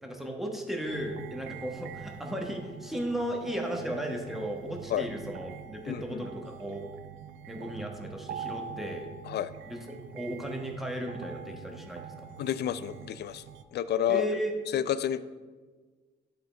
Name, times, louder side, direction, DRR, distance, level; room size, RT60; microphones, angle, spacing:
voice 1, 0.0-6.8 7.5-9.1 9.7-12.3 14.1-14.5, equal, ahead, 1 dB, 1.3 m, -35 dB
sound 1, 0.9-13.6, right 7 dB, 75° right, 0.4 m, -45 dB
voice 2, 5.9-6.3 9.3-9.5 12.4-13.4 13.7-14.3 14.7-15.2, left 10 dB, 55° left, 15 dB, 0.4 m, -30 dB
11.5 x 3.9 x 3.3 m, 1.4 s
cardioid pair, 90°, 20 cm